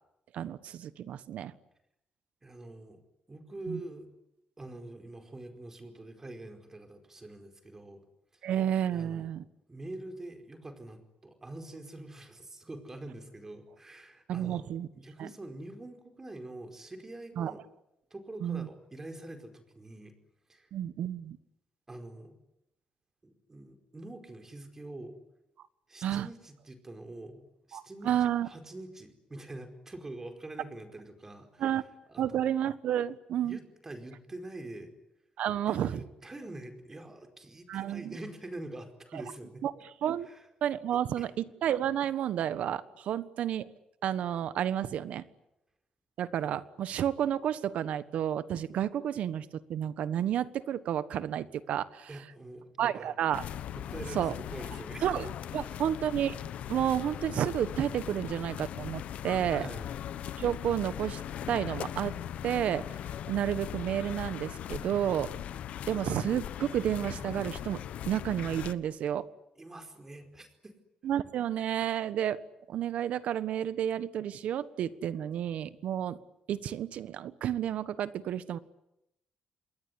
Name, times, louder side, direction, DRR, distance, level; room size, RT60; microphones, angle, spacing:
voice 1, 0.3-1.5 3.7-3.8 8.4-9.4 14.3-14.9 15.2-15.3 17.4-17.5 18.4-18.7 20.7-21.4 26.0-26.3 27.7-28.5 31.6-31.8 32.2-33.6 35.4-36.0 37.7-38.1 39.6-39.7 40.0-40.3 40.6-43.7 44.0-45.2 46.2-52.1 52.8-53.4 54.1-54.3 55.0-55.3 55.5-56.4 56.7-59.7 60.4-61.2 61.5-62.2 62.4-62.9 63.3-65.3 65.9-69.3 71.0-72.4 72.7-76.2 76.5-78.6, right 10 dB, 75° right, 15 dB, 1.3 m, -31 dB
voice 2, 2.4-3.0 3.3-4.1 4.6-8.0 8.3-8.4 8.9-9.3 9.7-17.6 18.1-20.1 20.5-20.7 21.9-22.4 23.2-25.2 25.9-32.5 33.4-34.9 35.7-39.6 40.2-40.5 41.2-41.3 52.1-53.1 53.7-55.1 59.6-59.9 69.6-70.7, right 2 dB, 20° right, 6 dB, 4.7 m, -45 dB
sound 1, 53.3-68.7, left 10 dB, 75° left, 1.1 m, -39 dB
28.0 x 21.5 x 10.0 m, 0.86 s
cardioid pair, 120°, 2 cm